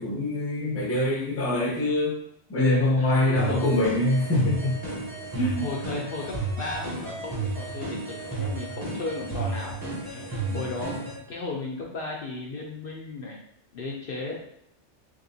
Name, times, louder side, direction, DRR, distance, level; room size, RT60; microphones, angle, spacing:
voice 1, 0.0-2.2 2.5-4.8 5.3-5.7 10.5-10.6, left 2 dB, 15° left, -2 dB, 0.6 m, -24 dB
voice 2, 3.0-3.9 5.6-10.9 11.3-13.4 13.7-14.4, left 3 dB, 60° left, -2 dB, 0.7 m, -35 dB
sound 1, 3.4-11.2, right 3 dB, 20° right, 0.7 m, -32 dB
3.5 x 3.3 x 2.7 m, 0.74 s
omnidirectional pair, 1.2 m